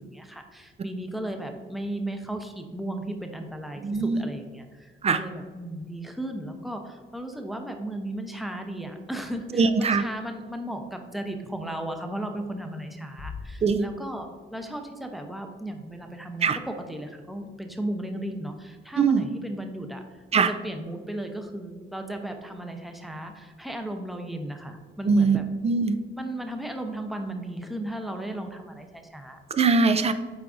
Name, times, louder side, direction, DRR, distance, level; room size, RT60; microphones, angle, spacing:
voice 1, 0.0-16.5 16.9-25.4 26.2-29.4, right 1 dB, ahead, 4 dB, 0.7 m, -35 dB
voice 2, 3.8-4.2 5.0-5.2 9.5-10.0 13.6-13.9 16.4-16.6 19.0-19.3 20.3-20.5 25.1-26.0 29.5-30.1, right 4 dB, 30° right, 11 dB, 0.4 m, -22 dB
sound 1, 13.2-14.6, left 4 dB, 85° left, 1.2 m, -41 dB
8.2 x 4.6 x 2.6 m, 1.5 s
cardioid pair, 90°, 20 cm